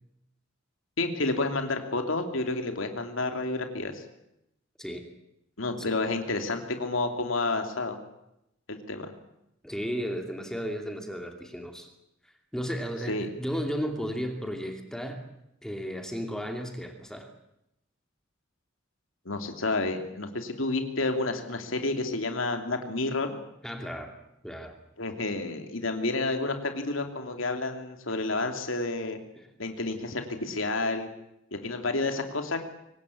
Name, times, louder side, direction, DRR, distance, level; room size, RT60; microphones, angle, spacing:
voice 1, 1.0-4.0 5.6-8.0 8.7-9.1 13.1-13.3 19.2-23.4 25.0-29.2 29.6-31.1 31.5-32.6, left 2 dB, 75° left, 5 dB, 2.9 m, -30 dB
voice 2, 9.6-11.9 12.5-15.3 15.6-17.3 23.6-24.1 24.4-24.7, equal, 5° left, 4 dB, 2.8 m, -34 dB
24.0 x 19.0 x 8.5 m, 0.83 s
head